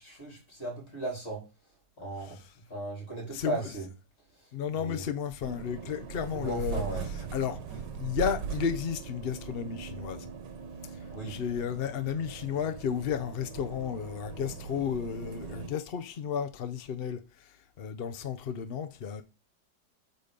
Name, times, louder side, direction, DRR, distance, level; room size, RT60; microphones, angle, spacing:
voice 1, 0.0-1.4 2.0-2.4 2.7-3.9 4.8-5.0 6.3-7.1 11.1-11.4, right 2 dB, 35° left, 3.9 m, -36 dB
voice 2, 2.2-2.5 3.3-3.7 4.5-10.3 11.2-17.5 17.8-19.2, left 7 dB, 75° left, 0.5 m, -33 dB
sound 1, 5.4-15.7, right 6 dB, 70° right, 1.6 m, -40 dB
8.5 x 4.0 x 5.2 m
omnidirectional pair, 2.0 m